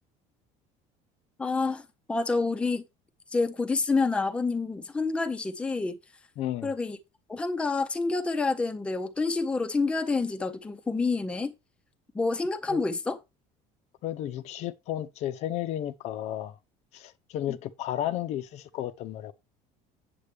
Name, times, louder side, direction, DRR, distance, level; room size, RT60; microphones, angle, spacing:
voice 1, 1.4-1.8 2.1-2.8 3.3-6.0 6.6-7.0 7.3-11.5 12.1-13.2 17.5-17.6, left 3 dB, 5° left, 0.6 m, -28 dB
voice 2, 6.4-6.7 12.7-12.8 14.0-16.6 16.9-19.3, left 12 dB, 45° left, 0.6 m, -33 dB
8.2 x 7.6 x 3.4 m
cardioid pair, 175°, 15 cm